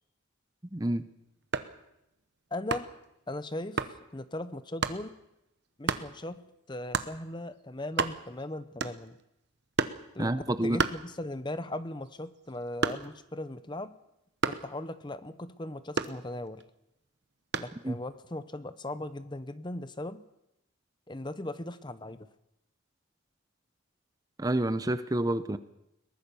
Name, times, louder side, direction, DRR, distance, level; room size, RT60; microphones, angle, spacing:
voice 1, 0.7-1.0 10.2-10.8 17.8-18.0 24.4-25.6, right 1 dB, 15° right, 13 dB, 0.7 m, -28 dB
sound 1, 1.4-1.8 2.7-3.0 3.8-4.0 4.8-5.0 5.9-6.1 6.9-7.2 7.6-7.7 7.9-8.4 8.8-9.2 9.8-10.1 10.8-11.5 11.9-13.3 14.4-14.7 16.0-16.6 17.5-17.8, right 4 dB, 55° right, 1.1 m, -31 dB
voice 2, 2.5-2.9 3.3-5.1 5.8-9.2 10.1-13.9 14.5-16.6 17.6-20.2 21.1-22.3, left 1 dB, 20° left, 13 dB, 0.8 m, -38 dB
22.0 x 19.5 x 7.0 m, 0.86 s
head